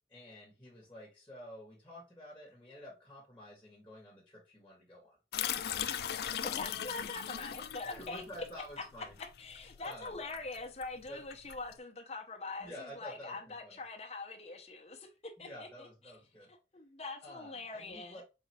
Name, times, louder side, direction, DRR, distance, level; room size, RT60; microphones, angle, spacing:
voice 1, 0.1-5.4 7.9-9.2 9.7-10.2 11.0-11.2 12.6-13.8 15.4-16.5 17.2-18.2, equal, 10° left, 1.7 m, -50 dB
sound 1, 5.3-11.7, left 9 dB, 60° left, 0.3 m, -39 dB
voice 2, 6.4-8.2 9.4-15.9 16.7-18.2, left 3 dB, 35° left, 0.8 m, -43 dB
4.2 x 3.9 x 2.8 m
head